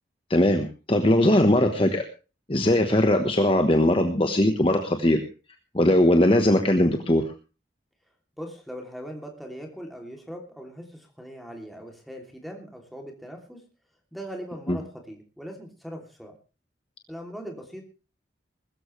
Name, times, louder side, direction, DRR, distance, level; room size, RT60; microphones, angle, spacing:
voice 1, 0.3-2.0 2.5-5.2 5.7-7.2 14.7-14.8, left 1 dB, 30° left, 5 dB, 1.2 m, -20 dB
voice 2, 8.4-13.6 14.1-16.3 17.1-17.8, equal, ahead, 1 dB, 2.9 m, -40 dB
21.0 x 13.5 x 3.3 m, 0.34 s
head